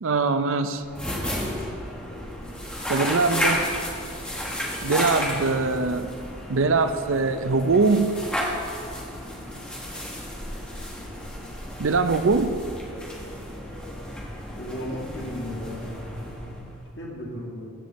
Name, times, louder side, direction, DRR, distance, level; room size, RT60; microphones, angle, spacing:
voice 1, 0.0-0.8 2.9-3.6 4.8-6.1 6.5-8.2 11.8-12.6, right 4 dB, 65° right, 10 dB, 0.6 m, -22 dB
sound 1, 0.8-16.9, equal, 5° left, 1.2 m, -32 dB
voice 2, 14.6-15.8 17.0-17.7, left 1 dB, 55° left, -4 dB, 1.9 m, -34 dB
14.5 x 8.1 x 4.2 m, 2.4 s
head